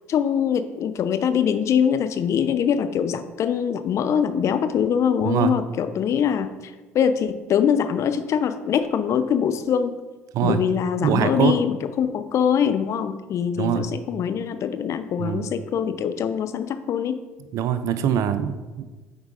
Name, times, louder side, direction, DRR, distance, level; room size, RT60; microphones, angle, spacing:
voice 1, 0.1-9.9 10.4-17.2, left 8 dB, 45° left, 10 dB, 0.4 m, -23 dB
voice 2, 11.0-11.5 13.6-13.8 15.2-15.5 17.5-18.8, right 9 dB, 55° right, 11 dB, 0.4 m, -23 dB
8.0 x 4.7 x 2.5 m, 1.2 s
hypercardioid pair, 60°, 7 cm